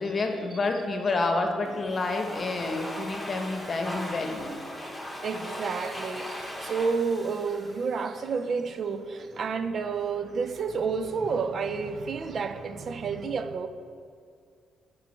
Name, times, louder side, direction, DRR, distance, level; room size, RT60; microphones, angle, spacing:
voice 1, 0.0-4.5, left 3 dB, 40° left, 0.9 m, -29 dB
Domestic sounds home sounds, 1.7-8.5, equal, 5° left, 1.2 m, -39 dB
voice 2, 2.6-2.9 3.7-3.8 4.8-5.0 5.2-13.7, right 5 dB, 50° right, 0.5 m, -30 dB
10.5 x 4.6 x 3.2 m
cardioid pair, 90°, 0 cm